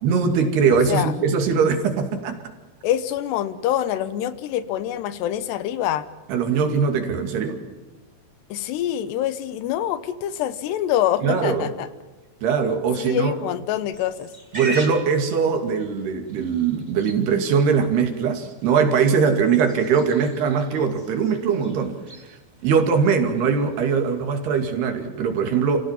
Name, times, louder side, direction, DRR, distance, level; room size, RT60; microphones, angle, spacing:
voice 1, 0.0-2.4 6.3-7.6 11.2-11.6 12.4-13.3 14.5-22.0 22.6-25.8, right 6 dB, 75° right, 5 dB, 4.4 m, -21 dB
voice 2, 2.8-6.1 8.5-11.9 13.0-14.3, left 11 dB, 85° left, 14 dB, 3.2 m, -25 dB
Livestock farm animals working animals, 13.9-24.8, right 1 dB, 15° right, 1.8 m, -42 dB
29.5 x 16.5 x 7.5 m, 1.2 s
omnidirectional pair, 4.7 m